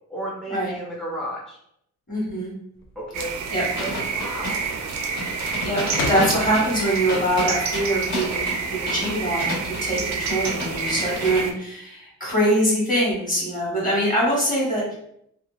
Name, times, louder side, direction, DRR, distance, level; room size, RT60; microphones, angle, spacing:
voice 1, 0.1-1.6 3.0-3.4 3.8-4.7, right 1 dB, ahead, -5 dB, 0.3 m, -33 dB
voice 2, 2.1-2.5 3.5-3.6 5.6-14.9, right 1 dB, 25° left, -5 dB, 1.3 m, -23 dB
sound 1, 2.7-3.1 3.4-3.8 4.1-4.6 4.9-7.2 7.5-9.0, left 3 dB, 85° left, 0.6 m, -32 dB
sound 2, 3.1-11.5, right 5 dB, 60° right, 0.4 m, -28 dB
sound 3, 3.6-11.5, left 1 dB, 55° left, 1.4 m, -32 dB
3.1 x 2.3 x 2.4 m, 0.73 s
cardioid pair, 140°, 31 cm